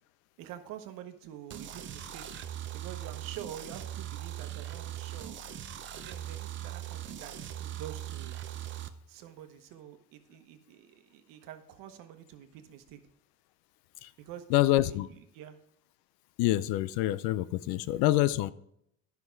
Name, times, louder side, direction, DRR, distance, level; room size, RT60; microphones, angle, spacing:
voice 1, 0.4-2.2 2.7-5.4 5.9-8.4 9.1-13.0 14.2-15.6, right 10 dB, 65° right, 1.2 m, -47 dB
sound 1, 1.5-8.9, right 11 dB, 35° right, 0.6 m, -40 dB
voice 2, 14.5-15.1 16.4-18.5, left 16 dB, 80° left, 0.6 m, -26 dB
11.0 x 5.9 x 4.6 m
cardioid pair, 145°, 35 cm